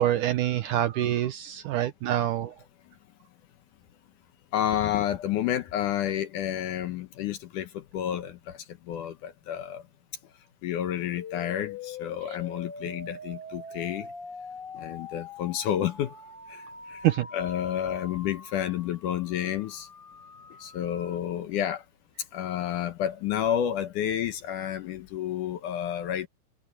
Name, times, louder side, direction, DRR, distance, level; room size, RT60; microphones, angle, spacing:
voice 1, 0.0-2.5 17.0-17.3, right 12 dB, 75° right, 2.0 m, -26 dB
voice 2, 4.5-8.6 8.9-9.8 10.6-14.1 14.7-16.1 16.5-16.6 16.9-17.0 17.3-19.9 20.6-21.8 22.3-26.3, left 10 dB, 70° left, 2.2 m, -30 dB
explosion or comes up, 11.2-21.2, left 4 dB, 45° left, 0.6 m, -43 dB
omnidirectional pair, 4.4 m